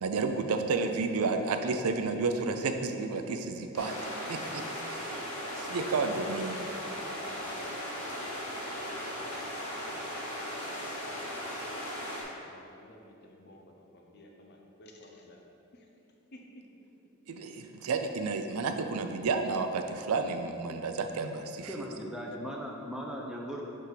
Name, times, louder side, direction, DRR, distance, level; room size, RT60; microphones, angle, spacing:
voice 1, 0.0-3.9 4.3-5.2 5.6-6.6 17.3-21.7, right 4 dB, 85° right, 7 dB, 0.4 m, -31 dB
sound 1, 3.8-12.2, equal, 90° left, 1.4 m, -37 dB
voice 2, 12.3-15.4 15.7-15.9 16.3-16.4, left 1 dB, 50° left, 1 dB, 0.7 m, -54 dB
voice 3, 21.7-23.6, equal, 5° right, -2 dB, 0.6 m, -38 dB
5.6 x 3.5 x 5.8 m, 2.7 s
head